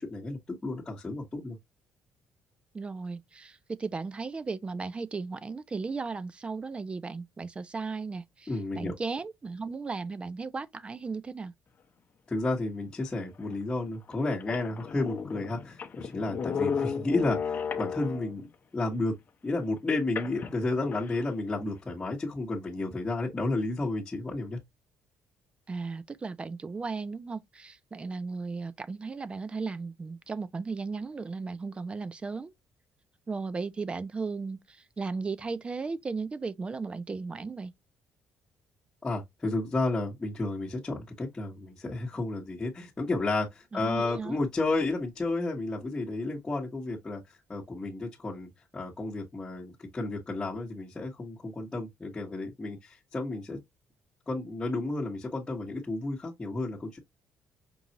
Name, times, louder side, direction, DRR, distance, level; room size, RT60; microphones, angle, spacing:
voice 1, 0.0-1.6 8.5-9.0 12.3-18.4 18.7-19.1 19.4-24.6 39.0-47.2 47.5-53.6 54.3-57.0, left 2 dB, 15° left, 1.2 m, -32 dB
voice 2, 2.7-8.5 8.8-11.5 25.7-32.5 33.3-37.7 43.7-44.4, right 4 dB, 25° right, 0.4 m, -36 dB
sound 1, 13.5-13.6 14.1-14.2 14.4-18.5 20.2-21.2, left 6 dB, 40° left, 0.7 m, -34 dB
5.3 x 2.4 x 2.8 m
cardioid pair, 110°, 5 cm